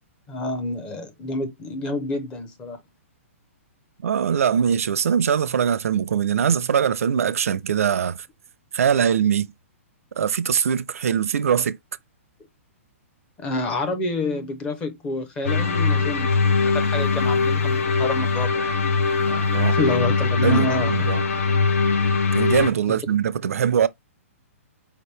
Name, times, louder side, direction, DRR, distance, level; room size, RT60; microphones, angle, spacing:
voice 1, 0.3-2.8 13.4-18.8 19.3-21.1, left 2 dB, 10° left, 0.6 m, -28 dB
voice 2, 4.0-8.2 8.7-9.5 10.2-11.8 19.4-19.8 20.4-21.2 22.3-23.9, right 8 dB, 80° right, 0.5 m, -22 dB
sound 1, 15.4-22.7, left 4 dB, 75° left, 1.0 m, -21 dB
4.8 x 2.9 x 3.2 m
hypercardioid pair, 175°, 8 cm